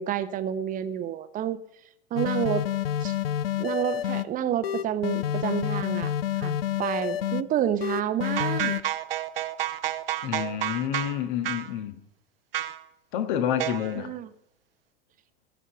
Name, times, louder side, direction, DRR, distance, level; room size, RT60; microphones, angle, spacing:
voice 1, 0.0-1.6 2.1-2.7 3.0-3.1 3.6-6.1 6.4-8.7 14.0-14.3, right 10 dB, 25° right, 13 dB, 0.8 m, -29 dB
sound 1, 2.2-4.2 4.6-7.4 7.8-8.8, left 11 dB, 70° left, 0.6 m, -28 dB
sound 2, 8.2-11.2 11.4-11.7 12.5-12.8 13.6-13.9, right 13 dB, 65° right, 0.8 m, -30 dB
voice 2, 10.2-12.0 13.1-14.1, left 9 dB, 50° left, 9 dB, 1.5 m, -29 dB
16.5 x 7.2 x 5.7 m, 0.87 s
figure-of-eight pair, 85°, 31 cm